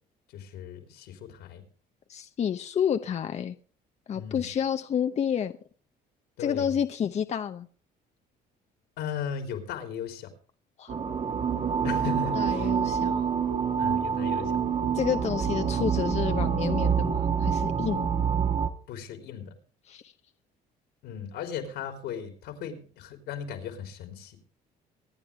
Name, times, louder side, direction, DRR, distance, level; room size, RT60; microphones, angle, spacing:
voice 1, 0.3-1.6 4.1-4.5 6.4-6.7 9.0-10.3 11.8-12.7 13.8-14.5 18.9-19.5 21.0-24.4, left 7 dB, 85° left, 6 dB, 3.5 m, -37 dB
voice 2, 2.1-3.6 4.1-5.5 6.4-7.7 10.8-10.9 12.3-13.3 14.9-18.1 19.9-20.1, left 8 dB, 40° left, 8 dB, 0.8 m, -29 dB
sound 1, 10.9-18.7, right 7 dB, 40° right, 1.4 m, -27 dB
24.5 x 9.9 x 3.4 m, 0.43 s
cardioid pair, 110°, 17 cm